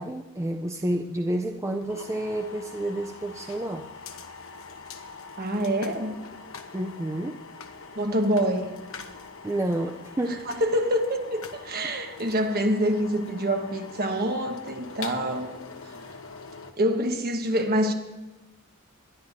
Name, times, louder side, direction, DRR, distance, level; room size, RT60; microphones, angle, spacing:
voice 1, 0.0-3.9 6.7-7.4 9.4-10.5, right 1 dB, 15° right, 3 dB, 0.4 m, -29 dB
sound 1, 1.2-16.7, left 4 dB, 65° left, 1.0 m, -44 dB
voice 2, 5.4-6.2 8.0-8.7 10.6-15.5 15.9-16.0 16.8-17.9, equal, 45° right, 4 dB, 1.3 m, -26 dB
20.5 x 12.0 x 2.7 m, 1.1 s
head